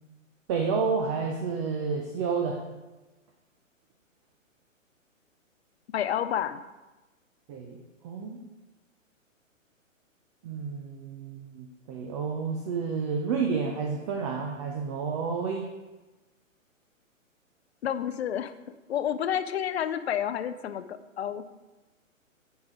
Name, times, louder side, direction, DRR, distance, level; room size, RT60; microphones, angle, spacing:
voice 1, 0.5-2.6 7.5-7.8 8.0-8.4 10.4-15.6, right 5 dB, 25° right, 2 dB, 0.6 m, -30 dB
voice 2, 5.9-6.6 17.8-18.5 18.9-21.4, left 9 dB, 50° left, 11 dB, 0.6 m, -30 dB
9.3 x 4.8 x 4.9 m, 1.1 s
figure-of-eight pair, 130°, 40 cm